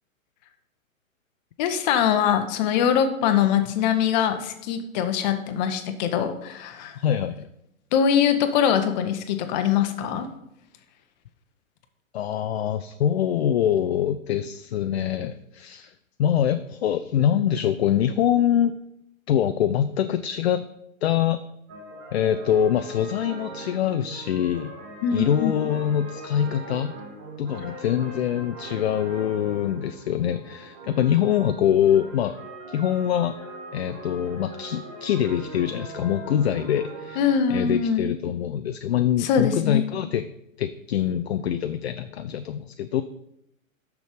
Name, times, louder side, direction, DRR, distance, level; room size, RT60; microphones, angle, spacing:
voice 1, 1.6-7.0 7.9-10.3 25.0-25.5 37.2-38.1 39.2-39.8, left 8 dB, 30° left, 8 dB, 0.9 m, -23 dB
voice 2, 7.0-7.5 12.1-15.9 16.2-18.7 19.3-20.6 21.0-21.4 22.1-24.7 25.1-26.9 27.4-32.3 32.7-33.3 33.7-40.3 40.6-43.0, left 10 dB, 50° left, 10 dB, 0.5 m, -24 dB
sound 1, 21.7-37.4, right 2 dB, 10° right, 0.3 m, -41 dB
6.4 x 6.2 x 5.0 m, 0.80 s
figure-of-eight pair, 120°, 41 cm